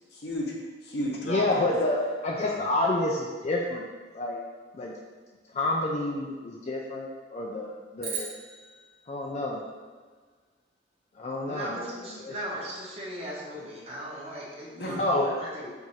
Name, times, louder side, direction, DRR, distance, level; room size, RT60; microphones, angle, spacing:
voice 1, 0.1-1.7 2.3-2.6 14.8-15.0, equal, 60° left, -1 dB, 0.8 m, -33 dB
voice 2, 1.3-3.8 4.1-4.4 4.8-4.9 5.5-8.3 9.1-9.6 11.2-12.0 12.2-12.3 15.0-15.5, left 2 dB, 35° left, -2 dB, 0.3 m, -28 dB
sound 1, 8.0-10.4, right 6 dB, 60° right, 1.0 m, -40 dB
voice 3, 11.5-15.7, equal, 35° right, -5 dB, 0.9 m, -38 dB
4.5 x 2.5 x 4.1 m, 1.5 s
head